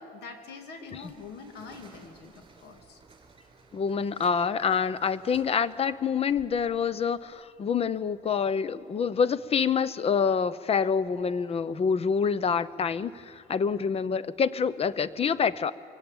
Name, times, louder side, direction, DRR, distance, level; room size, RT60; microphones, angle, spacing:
voice 1, 0.1-3.0 13.8-13.9, left 4 dB, 80° left, 6 dB, 2.6 m, -45 dB
sound 1, 0.6-11.1, right 4 dB, 30° right, 4.2 m, -58 dB
voice 2, 3.7-15.7, left 6 dB, 35° left, 18 dB, 0.7 m, -27 dB
23.0 x 17.0 x 9.0 m, 2.3 s
cardioid pair, 110°, 17 cm